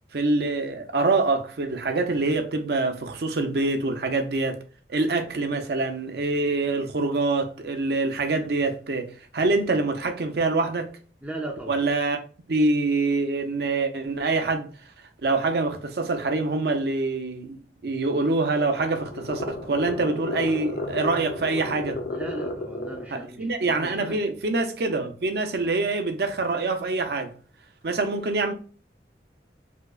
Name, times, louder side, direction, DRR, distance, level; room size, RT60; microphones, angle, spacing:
voice 1, 0.1-4.6 4.9-10.9 11.7-12.2 12.5-14.7 15.2-22.0 23.1-27.3 27.8-28.5, right 3 dB, 60° right, 0.5 m, -25 dB
voice 2, 11.2-11.8 22.1-23.5 23.8-24.2, right 1 dB, 10° right, 0.4 m, -36 dB
sound 1, 18.4-23.2, left 2 dB, 65° left, 0.5 m, -33 dB
4.7 x 2.1 x 2.3 m
head